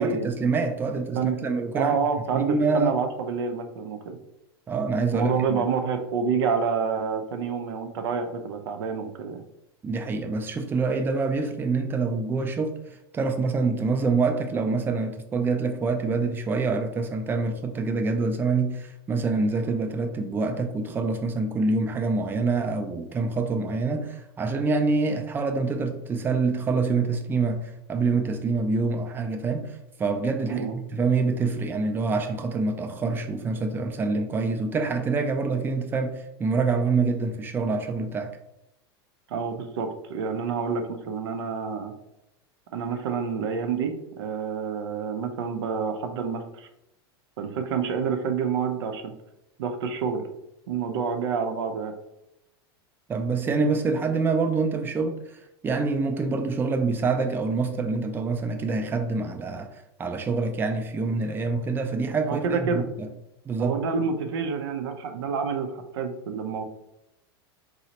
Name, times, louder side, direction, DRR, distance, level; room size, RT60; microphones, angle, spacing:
voice 1, 0.0-2.0 2.3-2.9 4.7-5.6 9.8-12.8 13.1-38.3 53.1-55.4 55.6-59.7 60.0-63.1 63.5-63.7, right 4 dB, 15° right, 6 dB, 0.3 m, -26 dB
voice 2, 1.7-4.2 5.1-9.4 30.5-30.7 39.3-41.9 42.7-46.7 47.4-49.1 49.6-50.2 50.7-51.9 62.3-62.9 63.6-66.6, right 6 dB, 85° right, 6 dB, 0.5 m, -28 dB
3.9 x 2.0 x 2.8 m, 0.86 s
supercardioid pair, 135°, 13 cm